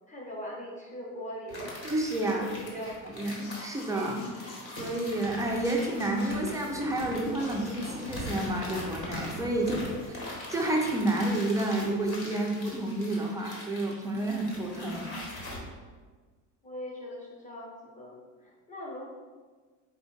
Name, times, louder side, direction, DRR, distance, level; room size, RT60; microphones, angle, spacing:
voice 1, 0.1-2.9 9.6-10.0 16.6-19.0, equal, 20° left, -3 dB, 0.9 m, -41 dB
sound 1, 1.5-15.6, left 1 dB, 40° left, 1.2 m, -41 dB
voice 2, 1.8-2.4 3.0-9.8 10.1-15.1, right 1 dB, 10° right, -1 dB, 0.4 m, -30 dB
sound 2, 3.4-5.3 5.6-6.8 7.4-8.2, left 2 dB, 55° left, 0.9 m, -47 dB
4.3 x 2.5 x 3.8 m, 1.4 s
cardioid pair, 130°, 36 cm